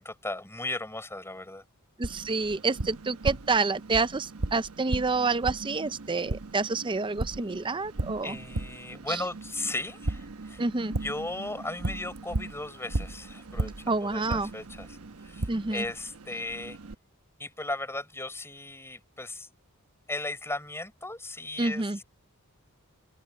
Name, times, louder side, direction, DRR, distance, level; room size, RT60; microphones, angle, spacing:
voice 1, 0.0-1.6 8.2-10.6 11.0-15.0 15.2-16.8 17.4-19.5 20.1-22.0, left 2 dB, 10° left, 6.7 m, -36 dB
voice 2, 2.0-8.4 9.1-9.2 10.6-11.0 13.9-14.5 15.5-15.8 21.6-22.0, right 3 dB, 20° right, 0.6 m, -28 dB
Tap, 2.0-16.9, right 2 dB, 75° right, 1.1 m, -36 dB
open air
head